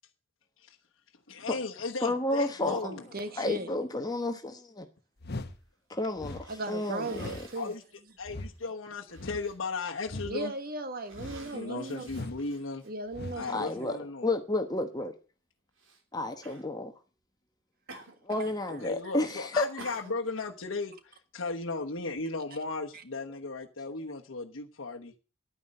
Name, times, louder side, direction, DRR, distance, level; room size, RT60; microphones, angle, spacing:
voice 1, 1.3-3.0 7.5-7.8 8.2-10.5 11.5-12.8 13.4-14.3 18.7-25.1, left 3 dB, 80° left, 1.2 m, -36 dB
voice 2, 2.0-2.8 3.4-4.9 5.9-7.4 13.5-15.1 16.1-16.9 18.2-19.7, left 2 dB, 20° left, 1.1 m, -31 dB
voice 3, 2.6-3.7 6.5-7.7 10.3-12.3 12.8-13.7 18.4-18.5, right 2 dB, 50° right, 1.6 m, -37 dB
sound 1, 5.2-5.6 6.2-6.5 7.1-7.5 8.2-8.5 9.2-9.5 10.1-10.3 11.1-11.5 12.1-12.4 13.1-13.4, left 2 dB, 55° left, 1.1 m, -39 dB
Cough, 6.2-7.9 8.6-8.7 9.1-9.6 10.3-10.6 11.0-12.9 13.8-13.9 15.8-16.0 16.4-16.7 17.9-18.6 18.8-19.2 19.8-20.5, right 3 dB, 80° right, 3.1 m, -50 dB
11.0 x 9.7 x 6.5 m
head